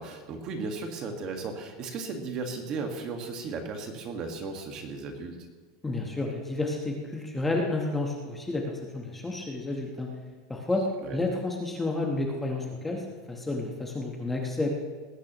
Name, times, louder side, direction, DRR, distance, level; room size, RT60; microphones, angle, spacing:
voice 1, 0.0-5.4 11.0-11.2, right 4 dB, 30° right, 4 dB, 1.7 m, -35 dB
voice 2, 5.8-10.1 10.5-13.0 13.3-14.7, left 2 dB, 5° left, 0 dB, 1.1 m, -30 dB
19.0 x 16.0 x 3.0 m, 1.4 s
supercardioid pair, 170°, 2 cm